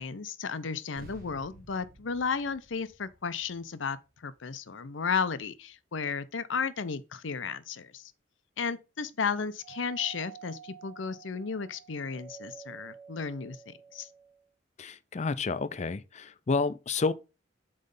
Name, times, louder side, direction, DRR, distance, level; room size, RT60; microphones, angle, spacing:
voice 1, 0.0-8.0 8.6-14.1, left 5 dB, 80° left, 0.7 m, -34 dB
sound 1, 1.0-5.7, right 1 dB, 50° right, 1.4 m, -54 dB
Doorbell, 9.6-14.5, right 7 dB, 20° right, 1.1 m, -49 dB
voice 2, 14.8-17.1, left 4 dB, 35° left, 0.4 m, -30 dB
7.8 x 3.2 x 5.3 m
head